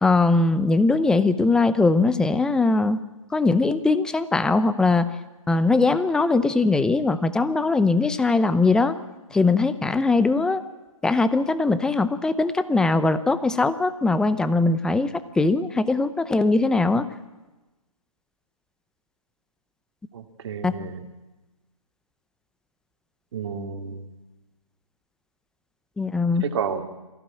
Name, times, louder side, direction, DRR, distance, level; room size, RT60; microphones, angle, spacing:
voice 1, 0.0-3.0 3.3-5.1 5.5-8.9 9.3-10.6 11.0-15.1 15.4-17.1 20.6-20.7 26.0-26.4, left 3 dB, 5° left, 13 dB, 0.7 m, -21 dB
voice 2, 20.1-21.0 23.3-24.1 26.4-26.8, right 6 dB, 50° right, 6 dB, 2.3 m, -31 dB
23.0 x 15.5 x 8.7 m, 1.1 s
hypercardioid pair, 140°, 18 cm